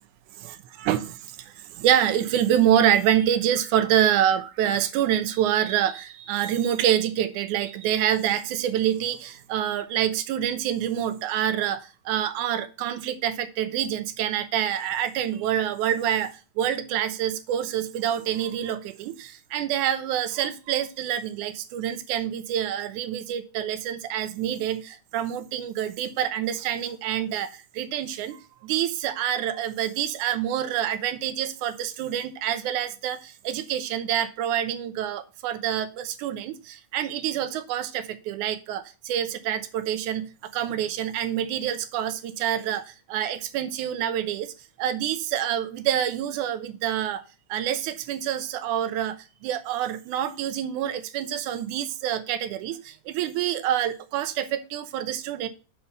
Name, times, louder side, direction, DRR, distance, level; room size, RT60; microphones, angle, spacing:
voice 1, 0.4-1.2 1.8-11.8 12.1-27.5 27.8-28.4 28.6-33.2 33.5-42.8 43.1-44.5 44.8-47.2 47.5-49.2 49.4-52.8 53.1-55.5, right 10 dB, 80° right, 2.1 m, -26 dB
5.8 x 5.6 x 6.6 m
omnidirectional pair, 3.6 m